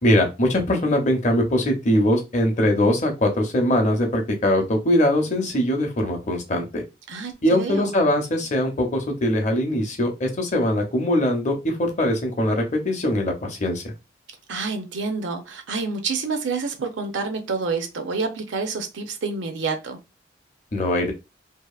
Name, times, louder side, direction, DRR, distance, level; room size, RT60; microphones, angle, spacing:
voice 1, 0.0-6.8 7.4-13.8 20.7-21.1, left 1 dB, 35° left, 0.6 m, -21 dB
voice 2, 7.1-7.9 14.5-20.0, right 4 dB, 75° right, 0.6 m, -28 dB
2.7 x 2.4 x 2.3 m
head